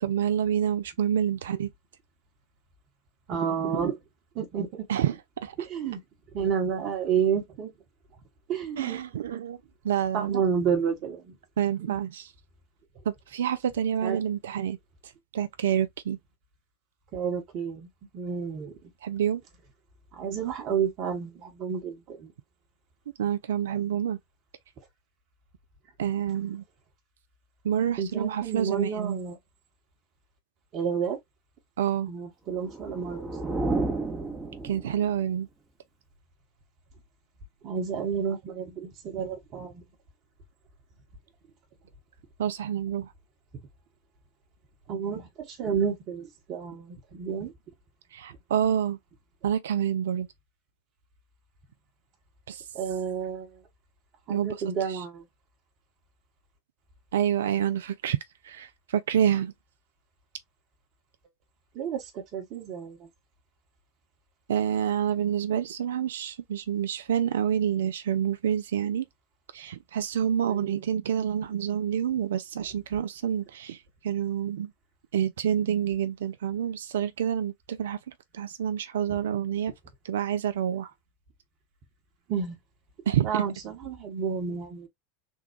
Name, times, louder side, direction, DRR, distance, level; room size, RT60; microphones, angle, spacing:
voice 1, 0.0-1.7 4.9-5.1 5.4-5.6 8.8-9.6 9.8-10.4 11.6-12.3 13.1-14.8 15.3-16.2 19.0-19.4 23.2-24.2 26.0-26.6 27.6-29.2 31.8-32.1 34.6-35.5 42.4-43.1 48.1-49.0 49.4-50.3 52.5-52.6 54.3-54.6 57.1-58.2 58.4-59.5 64.5-69.0 69.5-73.8 74.0-74.7 75.1-78.0 78.3-79.7 80.0-80.9 83.1-83.3, right 9 dB, 65° right, 0.3 m, -27 dB
voice 2, 3.3-4.0 4.3-4.9 5.6-6.0 6.3-7.7 8.5-9.0 9.3-9.4 10.1-11.4 11.8-12.0 14.0-14.2 17.1-17.9 18.1-18.9 20.1-22.3 28.0-29.4 30.7-31.2 32.1-33.6 37.6-39.8 44.9-47.5 52.7-53.6 54.3-55.2 61.7-63.1 70.4-70.8 79.1-79.2 82.3-82.6 83.2-84.9, right 7 dB, 40° right, 1.0 m, -30 dB
sound 1, 32.5-35.2, right 3 dB, 15° right, 0.8 m, -31 dB
3.6 x 2.2 x 2.9 m
figure-of-eight pair, 80°, 0 cm